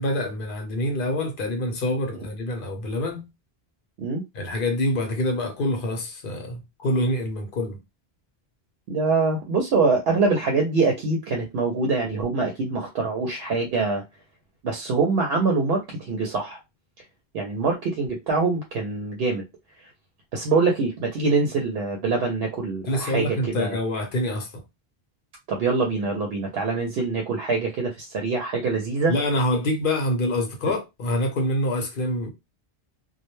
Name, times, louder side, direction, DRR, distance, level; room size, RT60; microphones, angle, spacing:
voice 1, 0.0-3.2 4.3-7.8 22.9-24.6 29.1-32.3, left 1 dB, 60° left, 0.8 m, -26 dB
voice 2, 8.9-14.0 14.6-16.6 17.3-19.4 19.8-19.9 20.3-23.8 25.5-29.1, right 4 dB, 75° right, 0.8 m, -24 dB
2.2 x 2.1 x 3.0 m
omnidirectional pair, 1.0 m